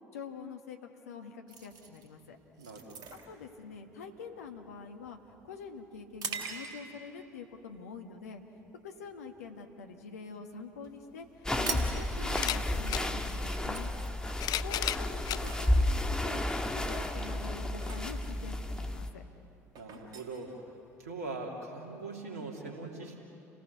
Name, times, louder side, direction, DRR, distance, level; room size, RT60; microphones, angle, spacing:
voice 1, 0.1-2.4 3.3-8.4 8.8-13.9 14.6-16.4 16.7-19.2, left 5 dB, 80° left, 5 dB, 1.7 m, -45 dB
sound 1, 1.5-7.1 7.6-7.8 8.4-8.7 9.0-10.2 10.5-10.6 10.8-10.9 11.2-21.2, right 5 dB, 50° right, 3.9 m, -44 dB
voice 2, 2.6-3.0 19.8-20.5 21.0-23.2, right 3 dB, 80° right, 1 dB, 3.0 m, -41 dB
sound 2, 10.9-11.0 12.3-13.1 14.1-15.4 16.2-16.3 17.6-17.7, left 13 dB, 50° left, 0.5 m, -34 dB
sound 3, 11.4-19.1, left 1 dB, 10° left, 1.7 m, -32 dB
30.0 x 18.0 x 7.0 m, 2.8 s
figure-of-eight pair, 60°, 8 cm